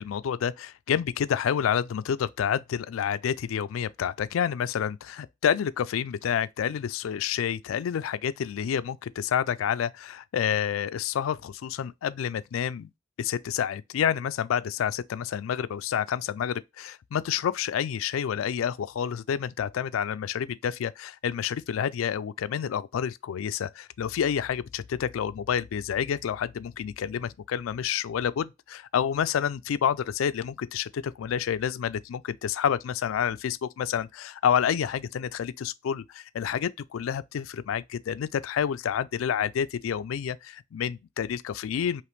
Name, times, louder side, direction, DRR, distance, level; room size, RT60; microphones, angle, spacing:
voice 1, 0.0-12.9 13.2-42.0, left 8 dB, 90° left, 0.3 m, -29 dB
5.0 x 3.0 x 3.1 m
head